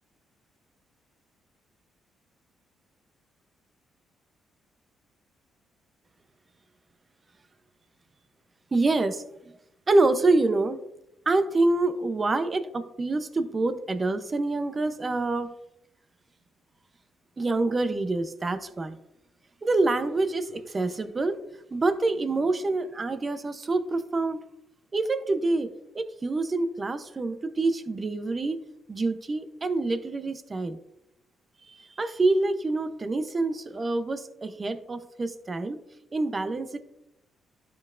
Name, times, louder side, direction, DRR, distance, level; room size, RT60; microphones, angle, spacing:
voice 1, 8.7-9.2 9.9-10.8 11.3-15.5 17.4-19.0 19.6-21.4 21.7-24.4 24.9-25.7 25.9-28.6 28.9-30.8 31.6-35.8 36.1-36.8, right 2 dB, 30° right, 10 dB, 0.7 m, -26 dB
11.5 x 5.4 x 2.6 m, 0.84 s
cardioid pair, 90°, 0 cm